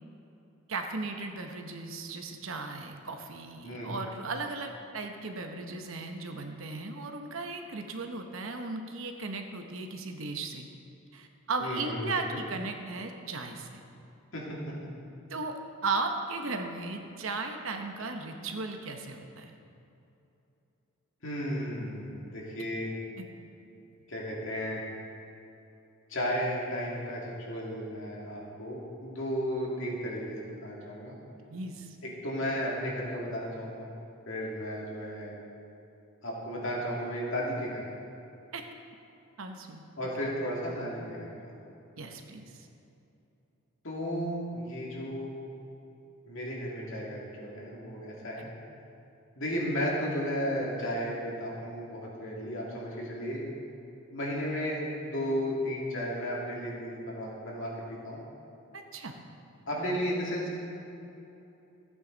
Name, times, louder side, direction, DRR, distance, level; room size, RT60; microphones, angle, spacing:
voice 1, 0.7-10.7 11.1-13.8 15.3-19.5 23.2-23.3 31.5-32.0 38.5-38.6 39.4-39.9 41.9-42.7 48.4-48.5 58.7-59.2, right 3 dB, 65° right, 5 dB, 0.9 m, -36 dB
voice 2, 11.6-12.0 12.3-12.4 14.3-14.6 21.2-22.9 24.1-24.8 26.1-31.1 32.0-33.9 34.3-35.3 36.2-37.8 40.0-41.5 43.8-45.5 46.3-48.5 49.4-53.4 54.1-58.2 59.7-60.6, equal, 60° left, -4 dB, 2.4 m, -34 dB
15.0 x 8.9 x 3.9 m, 2.8 s
head